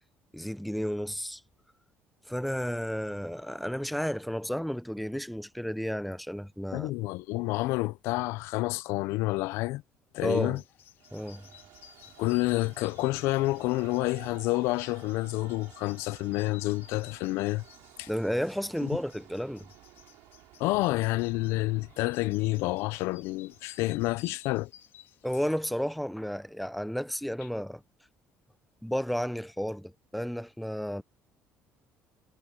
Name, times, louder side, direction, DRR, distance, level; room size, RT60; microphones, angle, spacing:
voice 1, 0.3-1.4 2.3-6.9 10.2-10.6 11.1-11.5 18.1-19.7 25.2-27.8 28.8-31.0, equal, ahead, 0.5 m, -32 dB
voice 2, 6.7-9.8 10.1-10.6 12.2-17.6 18.0-18.1 18.8-18.9 20.6-24.7, left 20 dB, 85° left, 0.4 m, -29 dB
sound 1, 10.4-26.0, left 10 dB, 55° left, 1.8 m, -56 dB
Train, 11.0-24.5, right 18 dB, 85° right, 6.3 m, -55 dB
cardioid pair, 135°, 4 cm